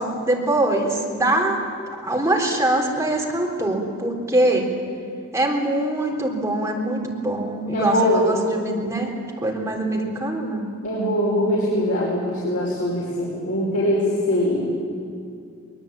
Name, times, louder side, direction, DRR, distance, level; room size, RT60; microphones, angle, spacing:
voice 1, 0.0-1.6 1.9-4.7 5.3-9.1 9.4-10.7, right 1 dB, 15° right, -1 dB, 3.7 m, -23 dB
voice 2, 7.7-8.3 10.8-14.7, equal, 75° left, -6 dB, 5.4 m, -22 dB
23.5 x 20.5 x 8.8 m, 2.4 s
head